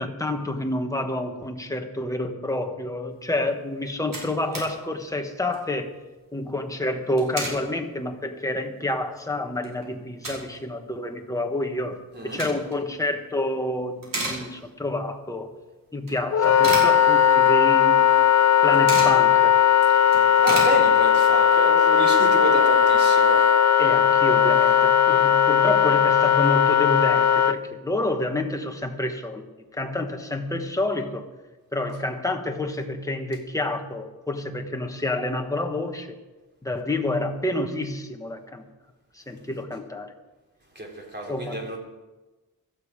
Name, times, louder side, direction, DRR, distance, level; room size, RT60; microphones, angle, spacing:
voice 1, 0.0-5.9 6.3-15.5 15.9-18.1 18.6-19.6 23.8-29.5 29.7-31.3 31.7-36.2 36.6-38.6 39.1-40.1 41.3-41.6, left 1 dB, 10° left, 4 dB, 1.2 m, -28 dB
sound 1, 3.5-3.6 3.8-4.7 5.1-5.2 5.4-5.7 6.9-7.6 8.1-8.2 8.8-8.9 9.2-10.6 10.9-11.0 12.0-12.8 13.3-13.6 13.9-14.9 15.3-15.4 16.1-17.6 17.8-17.9 18.2-19.2 19.6-19.7 19.9-21.3, right 2 dB, 60° right, 5.1 m, -33 dB
Wind instrument woodwind instrument, 16.3-27.6, left 8 dB, 50° left, 0.6 m, -18 dB
voice 2, 20.0-23.4 40.8-41.8, right 1 dB, 30° right, -1 dB, 3.5 m, -30 dB
17.0 x 13.0 x 5.0 m, 1.2 s
wide cardioid pair, 165°, 36 cm